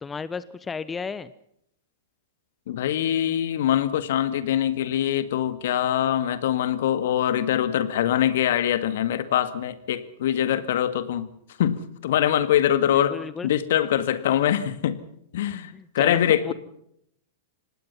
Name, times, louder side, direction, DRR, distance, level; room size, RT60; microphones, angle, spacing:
voice 1, 0.0-1.3 12.9-13.5 15.7-16.5, left 5 dB, 15° left, 16 dB, 1.0 m, -33 dB
voice 2, 2.7-11.3 11.6-13.2 13.4-15.0 15.3-16.5, left 11 dB, 60° left, 14 dB, 1.9 m, -23 dB
25.5 x 19.5 x 5.6 m, 0.72 s
figure-of-eight pair, 100°, 0 cm